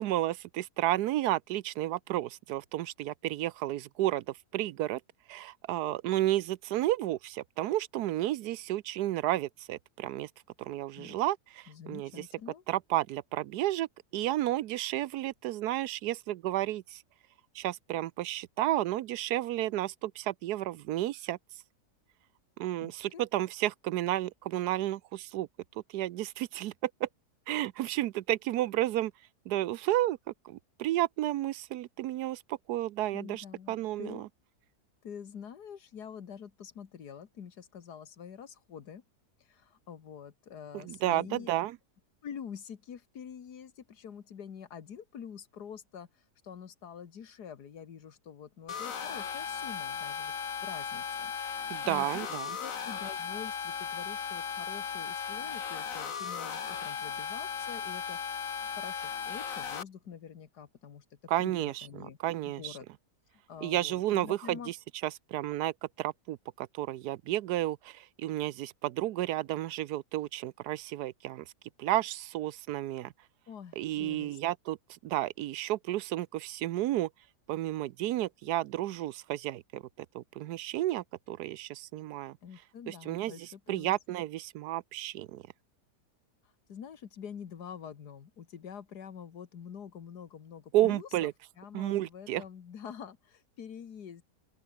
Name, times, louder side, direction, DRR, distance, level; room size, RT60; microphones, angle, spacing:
voice 1, 0.0-5.0 5.3-10.3 10.6-12.2 12.7-13.9 14.1-17.0 17.5-21.4 22.6-25.5 25.9-27.1 27.5-29.1 29.5-30.2 30.4-34.3 40.7-41.8 51.7-52.6 61.3-61.9 62.2-62.8 63.6-64.7 65.0-71.4 71.8-73.1 73.8-77.1 77.5-82.4 82.9-85.4 90.7-91.3 91.7-92.4, right 14 dB, 85° right, 1.2 m, -32 dB
voice 2, 11.7-12.6 22.8-23.2 33.1-34.2 35.0-39.0 39.4-41.5 42.2-50.3 50.6-51.5 51.8-52.3 52.6-58.2 58.6-62.2 62.5-62.9 63.3-64.7 73.5-74.4 82.4-83.9 86.7-91.3 91.6-94.2, left 7 dB, 90° left, 2.0 m, -46 dB
sound 1, 48.7-59.8, left 7 dB, 60° left, 1.8 m, -36 dB
open air
omnidirectional pair, 1.7 m